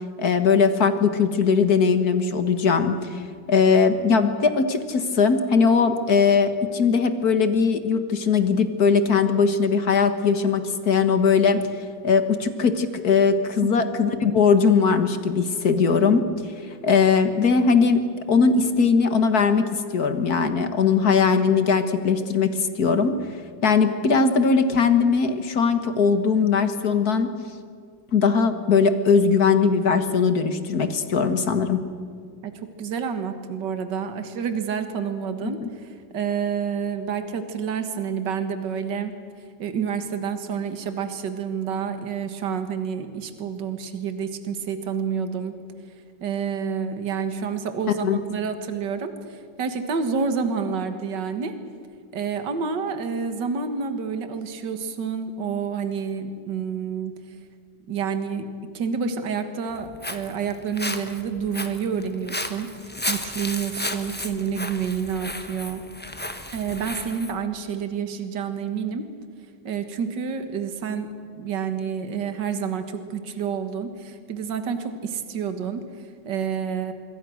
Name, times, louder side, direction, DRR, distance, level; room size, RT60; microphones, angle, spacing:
voice 1, 0.2-3.2 3.5-11.6 12.0-16.3 16.8-18.0 18.3-19.7 19.9-23.2 23.6-27.3 28.1-31.8 35.6-35.7 48.0-48.2, left 5 dB, 55° left, 9 dB, 1.9 m, -20 dB
voice 2, 32.4-39.2 39.6-45.6 46.2-51.6 52.1-57.1 57.9-58.4 58.7-65.8 66.5-69.1 69.6-71.1 71.4-76.9, right 6 dB, 65° right, 8 dB, 2.2 m, -29 dB
Walk footsteps, 59.7-67.3, left 1 dB, 5° left, 1.0 m, -34 dB
25.5 x 23.0 x 6.4 m, 2.2 s
omnidirectional pair, 2.1 m